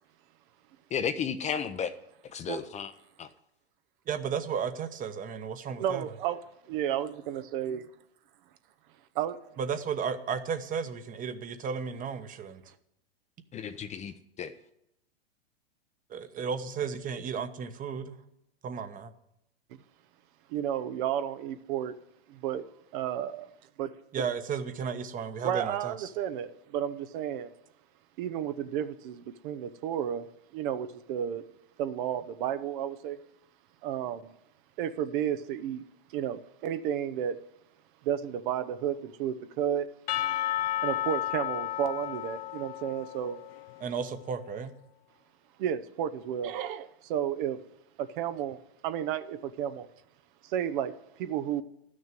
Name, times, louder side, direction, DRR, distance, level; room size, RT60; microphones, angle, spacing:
voice 1, 0.9-1.9 2.2-2.9 3.2-3.3 13.5-14.5, left 7 dB, 20° left, 0.7 m, -33 dB
voice 2, 4.1-6.0 9.6-12.6 16.1-18.2 18.6-19.1 24.1-26.1 43.8-44.7, right 6 dB, 25° right, 1.1 m, -34 dB
voice 3, 5.8-6.4 6.7-7.9 9.1-9.4 20.5-21.9 22.3-22.6 22.9-23.5 23.8-23.9 25.4-27.5 28.2-31.4 31.8-33.2 33.8-34.3 34.8-35.8 36.1-37.4 38.0-39.9 40.8-43.4 45.6-47.6 48.0-48.6 48.8-49.9 50.4-51.6, right 10 dB, 55° right, 0.9 m, -32 dB
Percussion / Church bell, 40.1-44.1, left 13 dB, 70° left, 0.6 m, -33 dB
12.0 x 6.5 x 9.1 m
hypercardioid pair, 115°, 31 cm